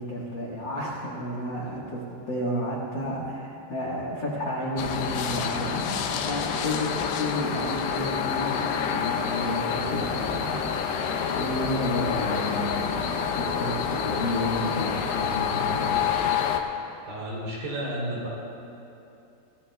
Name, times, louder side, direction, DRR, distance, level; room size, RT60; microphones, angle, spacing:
voice 1, 0.0-10.7 11.3-16.1, left 1 dB, 70° left, -4 dB, 1.0 m, -31 dB
sound 1, 4.8-16.6, left 7 dB, 85° left, 2.9 m, -28 dB
voice 2, 17.1-18.3, right 1 dB, 65° right, -5 dB, 5.3 m, -32 dB
25.5 x 16.0 x 2.3 m, 2.8 s
omnidirectional pair, 4.6 m